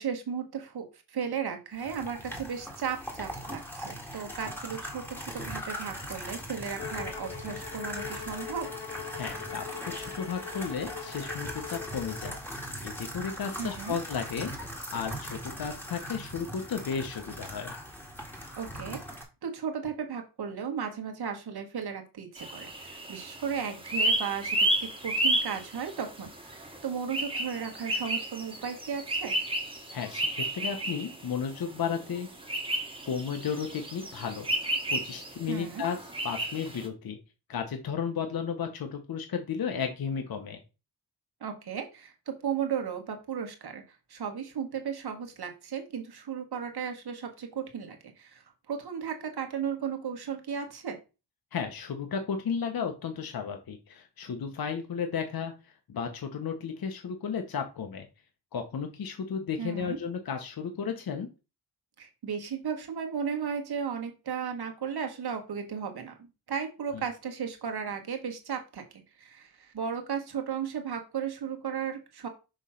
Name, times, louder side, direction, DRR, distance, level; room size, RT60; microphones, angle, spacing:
voice 1, 0.0-8.7 13.6-13.9 18.6-24.7 25.0-29.3 35.5-35.8 41.4-43.8 44.1-51.0 59.6-60.0 62.0-68.8 69.2-72.3, right 7 dB, 65° right, 4 dB, 1.6 m, -35 dB
sound 1, 1.8-19.2, equal, 5° left, 1.8 m, -40 dB
Bowed string instrument, 6.8-12.5, left 7 dB, 75° left, 1.5 m, -41 dB
voice 2, 9.1-12.4 12.8-14.5 14.9-17.7 29.9-32.3 33.0-34.5 34.9-36.0 36.2-37.2 37.5-40.6 51.5-55.5 55.9-58.1 58.5-61.3 66.9-67.0, left 6 dB, 60° left, 5 dB, 1.1 m, -34 dB
sound 2, 22.4-36.9, right 1 dB, 15° right, 1.5 m, -32 dB
6.3 x 3.2 x 5.7 m, 0.30 s
wide cardioid pair, 105°, 40 cm